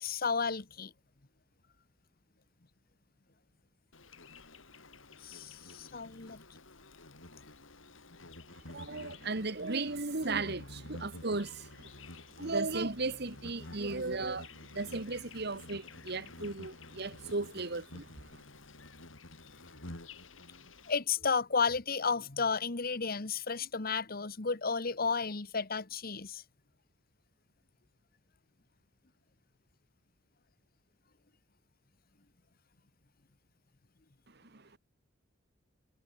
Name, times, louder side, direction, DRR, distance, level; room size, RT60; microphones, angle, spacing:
voice 1, 0.0-0.9 5.2-6.4 20.9-26.4, left 5 dB, 50° left, 1.4 m, -32 dB
Insect, 3.9-20.9, left 2 dB, 85° left, 5.8 m, -50 dB
voice 2, 8.7-11.9 12.4-18.1 34.5-34.8, right 3 dB, 55° right, 1.8 m, -36 dB
head